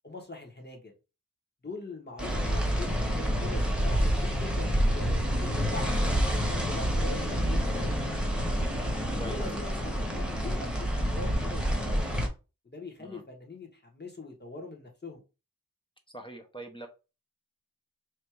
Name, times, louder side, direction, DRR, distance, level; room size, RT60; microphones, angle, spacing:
voice 1, 0.0-0.9 1.6-8.2 9.3-12.1 12.6-15.2, left 3 dB, 30° left, 1.5 m, -43 dB
sound 1, 2.2-12.3, equal, 5° right, 1.2 m, -28 dB
voice 2, 16.1-16.9, right 1 dB, 15° left, 0.8 m, -43 dB
3.3 x 2.7 x 4.5 m
wide cardioid pair, 50°, 34 cm